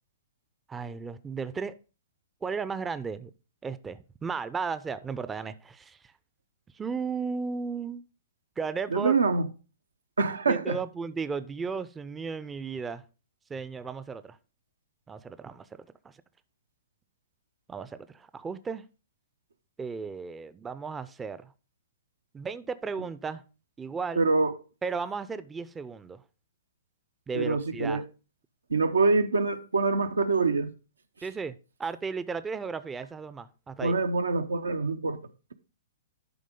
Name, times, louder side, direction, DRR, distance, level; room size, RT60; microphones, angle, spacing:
voice 1, 0.7-1.7 2.4-3.3 3.6-6.0 6.7-8.0 8.6-9.2 10.5-13.0 13.5-14.4 15.1-16.1 17.7-18.8 19.8-21.5 22.3-23.4 23.8-24.2 24.8-26.2 27.3-28.0 31.2-33.9, right 5 dB, 15° right, 0.5 m, -35 dB
voice 2, 8.9-9.5 10.2-10.8 24.2-24.5 27.3-28.0 28.7-30.7 33.8-35.2, right 3 dB, 85° right, 0.9 m, -25 dB
11.5 x 5.0 x 3.7 m
hypercardioid pair, 120°, 0 cm